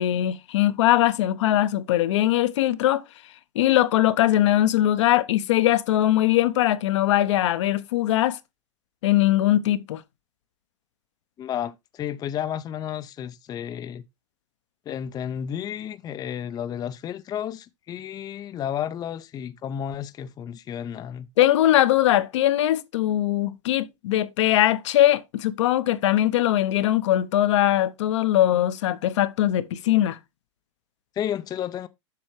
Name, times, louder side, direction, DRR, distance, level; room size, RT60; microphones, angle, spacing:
voice 1, 0.0-3.0 3.5-8.4 9.0-10.0 21.4-30.2, left 13 dB, 65° left, 0.8 m, -21 dB
voice 2, 11.4-14.0 14.9-21.3 31.2-31.9, left 9 dB, 25° left, 0.5 m, -32 dB
7.6 x 6.2 x 3.2 m
hypercardioid pair, 110°, 16 cm